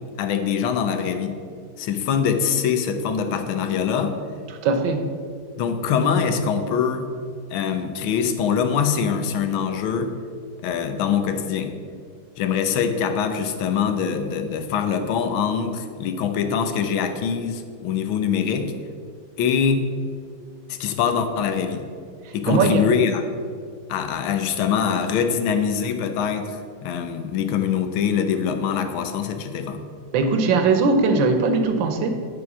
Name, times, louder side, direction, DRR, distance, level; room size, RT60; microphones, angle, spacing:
voice 1, 0.2-1.4 1.8-4.1 5.6-7.1 7.5-10.1 10.6-11.7 12.4-18.7 19.4-19.8 20.7-21.8 22.3-23.2 23.9-29.8, left 7 dB, 75° left, 7 dB, 1.6 m, -23 dB
voice 2, 4.6-5.0 22.5-22.8 30.1-32.3, right 4 dB, 70° right, 7 dB, 1.5 m, -20 dB
10.0 x 4.9 x 6.0 m, 2.1 s
omnidirectional pair, 2.3 m